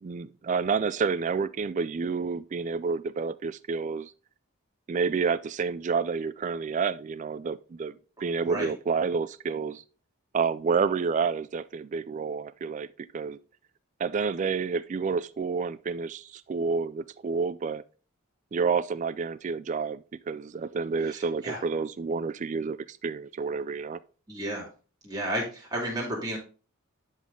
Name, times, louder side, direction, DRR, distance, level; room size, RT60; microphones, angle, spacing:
voice 1, 0.0-4.1 4.9-9.8 10.3-13.4 14.0-17.8 18.5-24.0, right 5 dB, 35° right, 0.3 m, -29 dB
voice 2, 21.0-21.6 24.3-24.7 25.0-26.4, right 1 dB, 20° right, 2.6 m, -32 dB
10.5 x 4.1 x 3.7 m
head